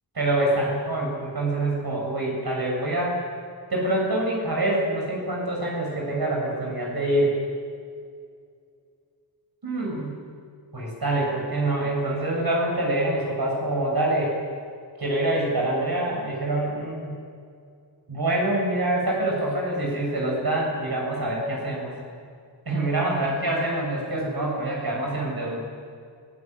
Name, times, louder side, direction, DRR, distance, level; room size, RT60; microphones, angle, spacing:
voice 1, 0.1-3.2 3.7-7.4 9.6-10.2 10.7-14.3 15.0-17.2 18.1-21.9 22.7-25.6, right 1 dB, 60° right, -2 dB, 7.6 m, -25 dB
25.0 x 18.0 x 9.5 m, 2.3 s
wide cardioid pair, 80°, 42 cm